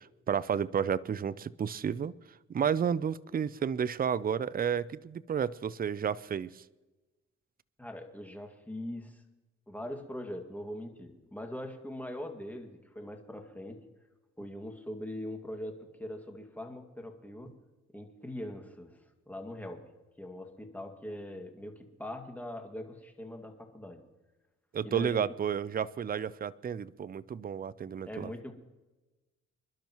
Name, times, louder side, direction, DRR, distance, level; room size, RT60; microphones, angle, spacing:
voice 1, 0.0-2.1 2.5-6.6 24.7-28.3, right 7 dB, 30° right, 18 dB, 0.5 m, -31 dB
voice 2, 7.8-9.2 9.7-13.8 14.4-17.6 17.9-19.0 19.3-19.8 20.2-24.0 24.8-25.3 28.0-28.5, left 1 dB, 5° left, 3 dB, 2.1 m, -42 dB
27.5 x 12.0 x 3.1 m, 1.1 s
cardioid pair, 90°, 30 cm